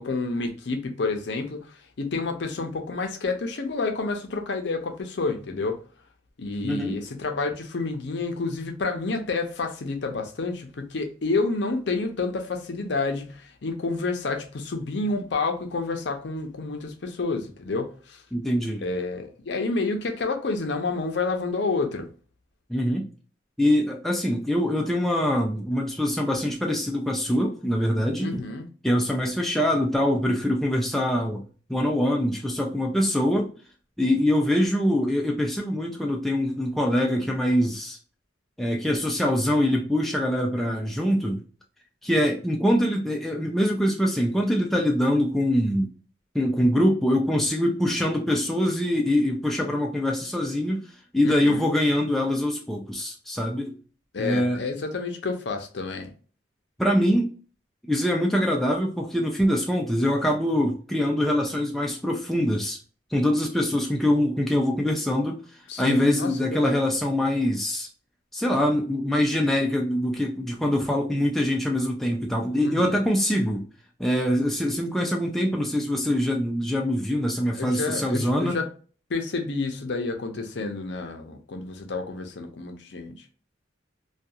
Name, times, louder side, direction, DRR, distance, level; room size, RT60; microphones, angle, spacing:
voice 1, 0.0-5.8 6.4-18.2 18.8-22.1 28.2-28.7 51.2-51.7 54.1-56.1 65.7-66.8 72.6-73.0 77.5-78.7 79.1-83.2, left 3 dB, 60° left, 0.5 m, -29 dB
voice 2, 6.6-7.0 18.3-18.8 22.7-23.1 23.6-28.4 28.8-31.4 31.7-33.5 34.0-38.0 38.6-41.4 42.0-45.9 46.3-50.8 51.1-53.7 54.2-54.6 56.8-57.3 57.9-62.8 63.1-65.4 65.8-67.9 68.3-73.6 74.0-78.6, equal, ahead, 0.3 m, -24 dB
2.3 x 2.3 x 2.7 m
head